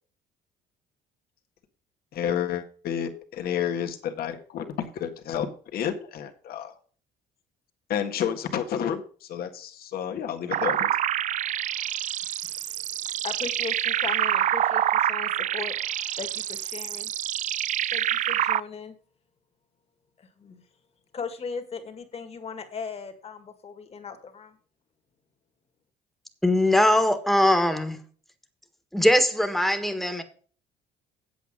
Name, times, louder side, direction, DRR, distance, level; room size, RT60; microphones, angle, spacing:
voice 1, 2.1-5.5 5.7-6.7 7.9-10.9, left 9 dB, 65° left, 5 dB, 1.6 m, -30 dB
sound 1, 10.5-18.6, right 11 dB, 50° right, 0.4 m, -27 dB
voice 2, 12.8-17.1 17.9-19.0 20.2-20.7 21.1-24.6, left 5 dB, 35° left, 7 dB, 2.0 m, -38 dB
voice 3, 26.4-28.0 28.9-30.2, left 1 dB, ahead, 7 dB, 1.5 m, -21 dB
8.2 x 8.2 x 5.1 m, 0.42 s
cardioid pair, 110°, 17 cm